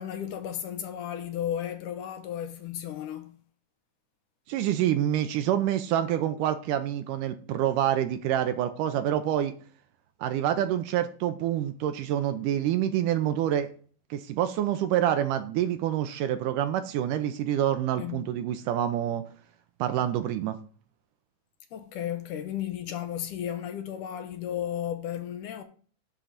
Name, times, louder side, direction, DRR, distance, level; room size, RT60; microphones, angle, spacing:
voice 1, 0.0-3.3 18.0-18.3 21.7-25.6, left 10 dB, 70° left, 2.2 m, -34 dB
voice 2, 4.5-9.5 10.2-13.7 14.1-19.2 19.8-20.6, right 11 dB, 75° right, 2.1 m, -27 dB
10.0 x 3.8 x 7.1 m
omnidirectional pair, 4.1 m